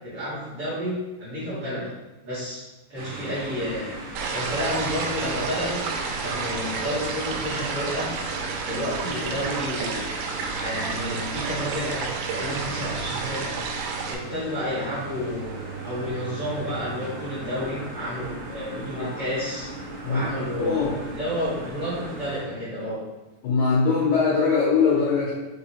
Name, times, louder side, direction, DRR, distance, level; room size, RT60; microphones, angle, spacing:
voice 1, 0.0-1.9 2.2-2.6 2.9-3.9 4.3-5.8 6.2-8.1 8.7-10.2 10.5-13.6 14.1-19.7 20.0-23.0, equal, 55° right, -12 dB, 1.7 m, -31 dB
sound 1, 2.9-22.4, right 3 dB, 70° right, 1.8 m, -37 dB
sound 2, 4.2-14.2, right 4 dB, 90° right, 2.6 m, -31 dB
voice 2, 18.8-19.2 20.0-20.3 20.6-20.9 23.4-25.3, left 5 dB, 85° left, -6 dB, 1.6 m, -22 dB
5.8 x 2.8 x 2.8 m, 1.1 s
omnidirectional pair, 4.6 m